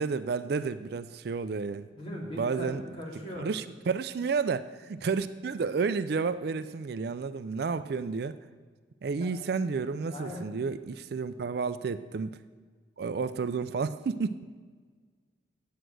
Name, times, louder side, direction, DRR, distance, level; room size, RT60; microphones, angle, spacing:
voice 1, 0.0-1.9 2.4-2.8 3.4-8.4 9.0-12.4 13.0-14.5, right 5 dB, 55° right, 13 dB, 0.4 m, -31 dB
voice 2, 1.9-3.6 9.2-9.3 10.1-10.4, equal, 30° left, -4 dB, 2.8 m, -39 dB
9.2 x 8.0 x 6.3 m, 1.5 s
head